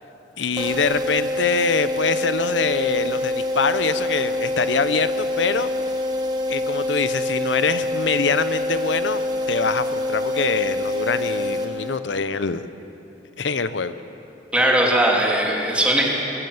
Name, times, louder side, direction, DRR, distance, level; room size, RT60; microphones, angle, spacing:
voice 1, 0.4-5.7 6.5-12.6 13.4-13.9, left 5 dB, 85° left, 12 dB, 0.8 m, -24 dB
sound 1, 0.6-12.3, left 1 dB, 25° right, 1.5 m, -26 dB
voice 2, 14.5-16.1, right 1 dB, 5° right, -2 dB, 3.1 m, -19 dB
20.5 x 15.0 x 9.4 m, 3.0 s
head